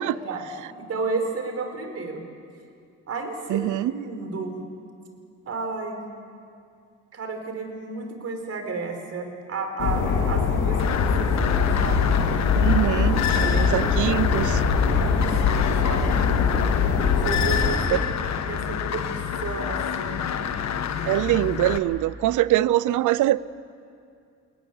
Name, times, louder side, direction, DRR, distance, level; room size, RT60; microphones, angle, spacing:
voice 1, 0.0-2.3 3.1-4.6 5.5-6.0 7.1-12.0 14.9-16.3 17.2-19.0 19.4-20.5, right 3 dB, 55° right, 5 dB, 4.4 m, -32 dB
voice 2, 3.5-3.9 12.5-14.6 17.9-18.0 21.1-23.4, right 15 dB, 80° right, 19 dB, 0.7 m, -23 dB
sound 1, 9.8-17.8, left 5 dB, 85° left, 2.8 m, -22 dB
sound 2, 10.8-21.8, left 8 dB, 65° left, 1.4 m, -28 dB
22.5 x 17.5 x 9.9 m, 2.4 s
cardioid pair, 90°, 30 cm